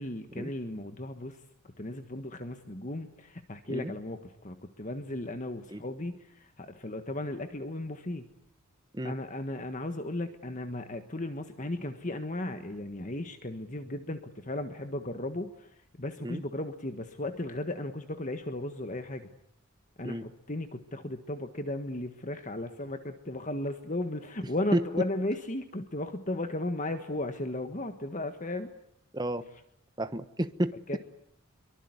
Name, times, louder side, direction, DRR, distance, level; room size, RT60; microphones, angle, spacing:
voice 1, 0.0-1.4 1.8-8.3 9.0-19.3 20.0-28.7 30.9-31.0, left 1 dB, 35° left, 8 dB, 1.5 m, -35 dB
voice 2, 29.1-29.4 30.0-30.7, right 1 dB, 20° right, 10 dB, 1.2 m, -31 dB
25.0 x 23.5 x 9.7 m, 0.72 s
head